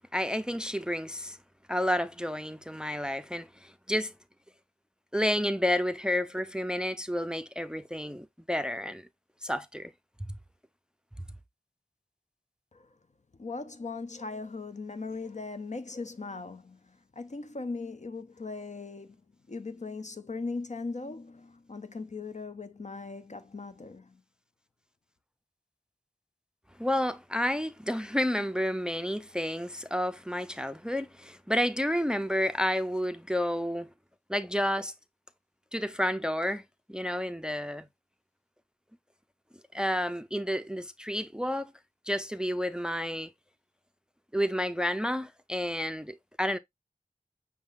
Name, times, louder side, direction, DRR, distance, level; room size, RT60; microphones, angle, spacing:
voice 1, 0.1-1.4 1.7-4.1 5.1-9.1 9.4-9.9 26.8-33.9 34.3-34.9 35.7-36.6 36.9-37.9 39.7-41.7 42.1-43.3 44.3-46.6, equal, 5° right, 0.4 m, -30 dB
voice 2, 13.4-19.2 19.5-24.2, left 3 dB, 55° left, 0.5 m, -39 dB
5.6 x 3.5 x 2.5 m
wide cardioid pair, 40°, 15 cm